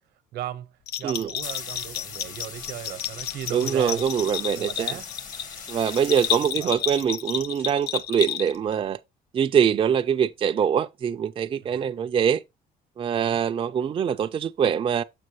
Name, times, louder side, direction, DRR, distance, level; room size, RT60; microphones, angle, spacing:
voice 1, 0.3-4.0 4.5-5.1 6.0-6.7 11.6-11.9 13.1-13.4, right 12 dB, 80° right, 0.9 m, -37 dB
Bell, 0.9-8.7, left 10 dB, 70° left, 0.6 m, -31 dB
sound 1, 1.1-7.1, left 5 dB, 50° left, 1.3 m, -41 dB
voice 2, 3.5-4.9 5.7-9.0 9.3-12.4 13.0-15.0, right 8 dB, 30° right, 0.4 m, -24 dB
7.6 x 6.1 x 3.1 m
cardioid pair, 110°, 17 cm